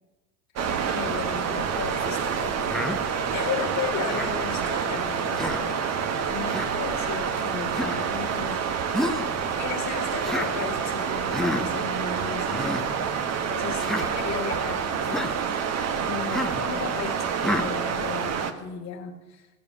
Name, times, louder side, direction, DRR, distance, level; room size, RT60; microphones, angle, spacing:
sound 1, 0.6-18.5, right 7 dB, 35° right, 1.3 m, -28 dB
voice 1, 0.8-2.9 3.3-5.9 6.3-8.6 9.5-13.2 13.5-15.5 16.0-19.5, left 7 dB, 35° left, 2 dB, 1.6 m, -35 dB
Human voice, 2.7-3.0 4.1-4.4 5.3-5.7 6.5-6.7 7.7-8.0 8.9-9.3 10.2-10.5 11.3-11.6 12.5-12.8 13.8-14.1 15.0-15.3 16.3-16.6 17.4-17.7, left 1 dB, ahead, 1.0 m, -29 dB
16.5 x 6.8 x 8.2 m, 1.1 s
figure-of-eight pair, 80°, 44 cm